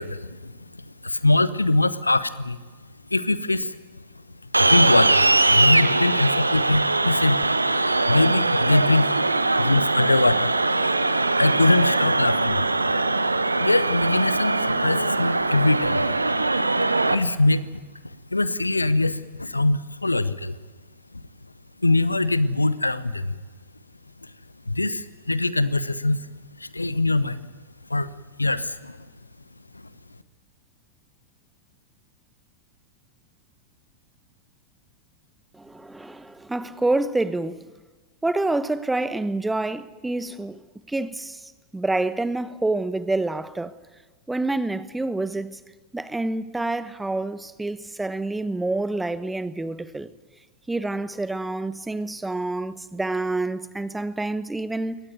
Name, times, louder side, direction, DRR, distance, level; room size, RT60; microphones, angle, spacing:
voice 1, 0.0-2.6 3.1-3.8 4.6-7.7 8.1-9.1 9.6-10.5 11.1-12.7 13.6-16.1 17.1-20.6 21.1-21.2 21.8-23.4 24.7-26.3 26.6-27.5 27.9-28.1 28.4-29.0 29.7-29.8, left 2 dB, 85° left, 0.8 m, -23 dB
sound 1, 4.5-17.2, right 2 dB, 80° right, 1.0 m, -21 dB
voice 2, 35.5-37.6 38.2-40.6 40.9-43.7 44.3-45.6 45.9-50.1 50.7-55.0, right 2 dB, 5° right, 1.1 m, -27 dB
23.0 x 18.5 x 9.4 m
figure-of-eight pair, 90°, 0 cm